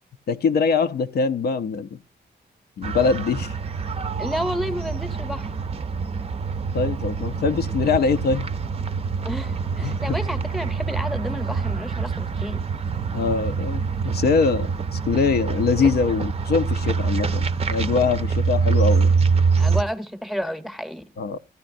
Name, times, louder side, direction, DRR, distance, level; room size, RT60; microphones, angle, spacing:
voice 1, 0.3-1.9 2.8-3.5 6.7-8.5 9.8-10.2 13.1-19.1 21.2-21.4, left 5 dB, 65° left, 0.4 m, -23 dB
sound 1, 2.8-19.8, right 5 dB, 35° right, 0.5 m, -25 dB
voice 2, 4.2-5.5 9.2-12.6 19.6-21.0, equal, ahead, 0.8 m, -30 dB
14.0 x 9.9 x 2.5 m
wide cardioid pair, 115°, 18 cm